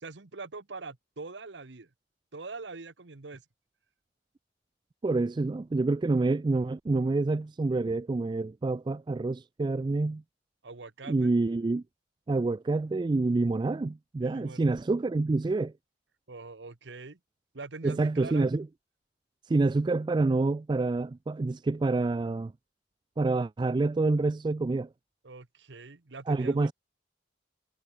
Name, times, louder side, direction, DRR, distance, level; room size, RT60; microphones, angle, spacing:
voice 1, 0.0-1.9 2.3-3.5 10.6-11.3 14.2-14.7 16.3-17.2 17.5-18.5 25.2-26.7, right 3 dB, 80° right, 1.2 m, -43 dB
voice 2, 5.0-10.2 11.1-11.8 12.3-15.7 17.8-18.7 19.5-22.5 23.2-24.9 26.3-26.7, right 3 dB, 25° right, 0.3 m, -27 dB
head